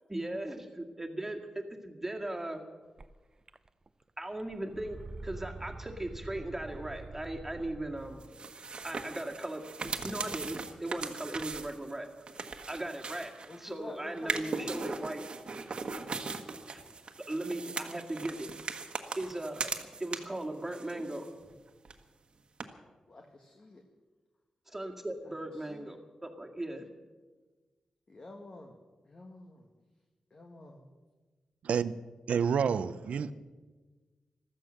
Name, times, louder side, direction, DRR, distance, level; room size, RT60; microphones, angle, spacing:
voice 1, 0.1-2.6 4.2-8.2 8.8-12.1 12.7-13.3 13.6-15.2 16.7-16.8 17.3-18.5 19.2-19.7 20.0-21.3 24.7-26.9, right 1 dB, 15° right, 2.1 m, -38 dB
sound 1, 3.0-3.1 3.5-4.0 4.3-8.3, right 3 dB, 30° right, 0.6 m, -46 dB
sound 2, 8.2-13.7 14.2-20.4 20.7-21.6 21.8-21.9 22.6-22.7, right 4 dB, 50° right, 1.3 m, -39 dB
voice 2, 13.5-14.8 20.9-21.4 23.1-23.8 25.6-25.9 28.1-29.7 30.3-30.9, left 2 dB, 40° left, 1.5 m, -48 dB
voice 3, 32.3-33.3, right 7 dB, 85° right, 0.6 m, -28 dB
15.0 x 13.5 x 6.5 m
wide cardioid pair, 100°, 2 cm